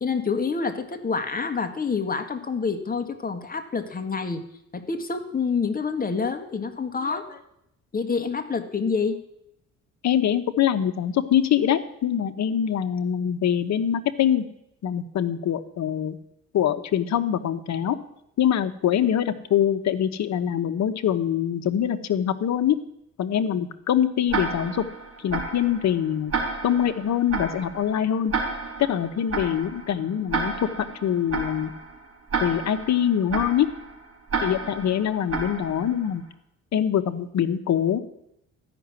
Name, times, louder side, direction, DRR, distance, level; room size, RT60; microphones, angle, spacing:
voice 1, 0.0-4.4 4.7-7.4 7.9-9.2, left 5 dB, 30° left, 7 dB, 1.7 m, -27 dB
voice 2, 10.0-14.4 14.8-16.2 16.5-18.0 18.4-22.8 23.2-24.8 25.2-26.3 26.6-28.3 28.8-30.7 31.0-31.7 32.4-33.7 34.4-36.2 36.7-38.0, left 9 dB, 65° left, 10 dB, 1.1 m, -24 dB
Tick-tock, 24.3-36.2, right 4 dB, 50° right, 3.9 m, -32 dB
13.5 x 6.1 x 9.7 m, 0.78 s
cardioid pair, 90°, 30 cm